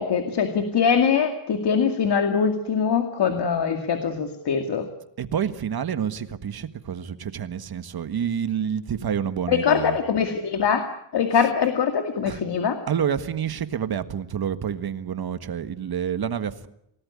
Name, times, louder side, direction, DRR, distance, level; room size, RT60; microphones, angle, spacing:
voice 1, 0.0-4.9 9.5-12.8, left 6 dB, 60° left, 6 dB, 2.4 m, -23 dB
voice 2, 5.2-10.0 12.2-12.4 12.9-16.7, right 8 dB, 55° right, 10 dB, 1.7 m, -28 dB
28.5 x 18.5 x 9.7 m, 0.78 s
wide cardioid pair, 180°, 44 cm